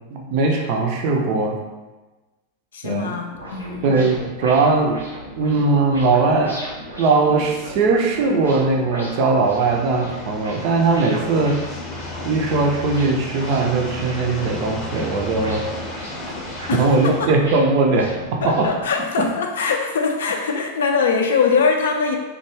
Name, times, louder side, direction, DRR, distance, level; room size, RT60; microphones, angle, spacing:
voice 1, 0.1-1.6 2.8-3.1 3.8-5.1 5.4-6.6 7.0-11.6 12.2-15.6 16.3-16.4 16.7-18.7 19.2-19.3, right 3 dB, 45° right, 2 dB, 0.4 m, -19 dB
voice 2, 2.7-3.9 16.7-17.3 18.4-22.2, left 5 dB, 60° left, 2 dB, 0.3 m, -22 dB
sound 1, 3.3-18.8, equal, 85° right, 0.8 m, -37 dB
sound 2, 9.3-17.3, left 2 dB, 20° left, 0.7 m, -34 dB
2.2 x 2.2 x 3.1 m, 1.2 s
figure-of-eight pair, 90°, 0 cm